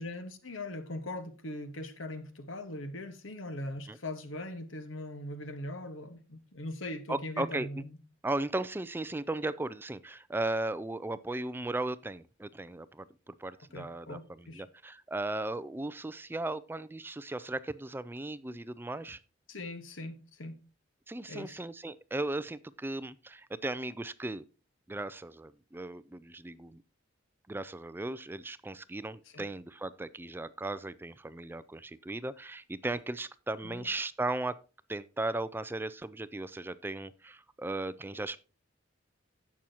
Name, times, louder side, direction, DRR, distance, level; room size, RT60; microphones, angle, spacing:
voice 1, 0.0-8.0 13.7-14.6 19.5-20.6 21.3-21.6 29.3-29.4 33.6-33.9, left 1 dB, 80° left, 1.4 m, -40 dB
voice 2, 7.1-7.7 8.2-19.2 21.1-24.4 24.9-26.8 27.5-34.6 34.9-38.5, right 2 dB, 10° right, 0.3 m, -36 dB
16.0 x 6.2 x 2.9 m
head